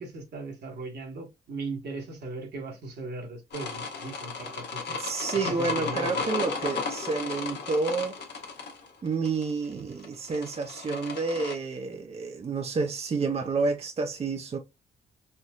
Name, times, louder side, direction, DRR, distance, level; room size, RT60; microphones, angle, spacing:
voice 1, 0.0-5.0 5.4-6.2, right 3 dB, 70° right, 1.4 m, -38 dB
sound 1, 3.5-11.5, left 4 dB, 75° left, 1.2 m, -34 dB
voice 2, 5.0-8.2 9.0-14.6, right 4 dB, 35° right, 0.6 m, -29 dB
4.3 x 2.6 x 2.4 m
cardioid pair, 80°, 17 cm